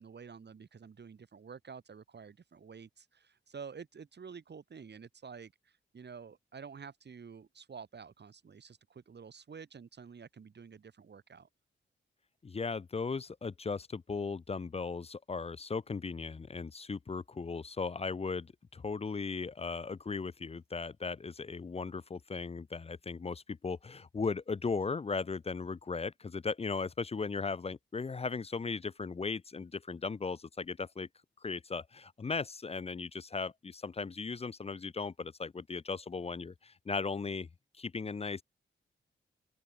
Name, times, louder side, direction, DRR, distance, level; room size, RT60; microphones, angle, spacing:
voice 1, 0.0-11.5, right 6 dB, 55° right, 3.1 m, -49 dB
voice 2, 12.4-31.1 31.4-37.5 37.8-38.4, left 4 dB, 30° left, 0.6 m, -37 dB
open air
cardioid pair, 75°, 20 cm